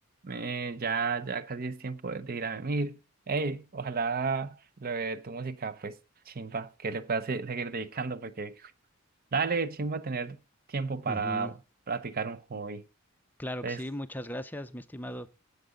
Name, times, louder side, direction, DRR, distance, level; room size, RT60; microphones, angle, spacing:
voice 1, 0.2-3.0 3.3-6.0 6.3-8.7 9.3-10.4 10.7-11.6 11.9-12.8 13.6-13.8, right 4 dB, 40° right, 0.6 m, -32 dB
voice 2, 11.1-11.5 13.4-15.3, equal, 10° left, 0.5 m, -37 dB
16.0 x 6.7 x 3.8 m
head